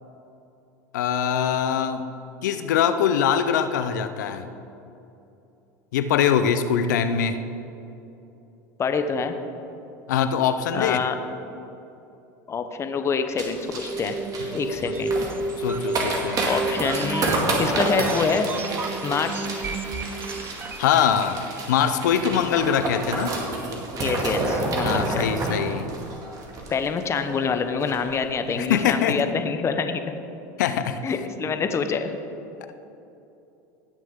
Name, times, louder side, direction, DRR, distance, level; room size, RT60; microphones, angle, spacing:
voice 1, 0.9-2.0 2.4-4.5 5.9-7.4 10.1-11.0 14.9-15.0 15.6-16.5 20.8-23.3 24.8-25.9 28.6-29.2 30.6-31.0, left 8 dB, 85° left, 10 dB, 0.6 m, -23 dB
voice 2, 8.8-9.4 10.7-11.2 12.5-14.2 14.5-15.1 16.5-18.5 19.0-19.5 24.0-25.3 26.7-30.1 31.0-32.2, left 5 dB, 30° left, 7 dB, 0.8 m, -26 dB
sound 1, 13.4-27.2 27.5-27.6 27.8-28.1 28.5-28.7, right 2 dB, 40° right, 2.2 m, -29 dB
sound 2, 13.8-21.0, right 3 dB, 20° right, 0.5 m, -31 dB
18.0 x 6.3 x 3.7 m, 2.8 s
supercardioid pair, 100°, 9 cm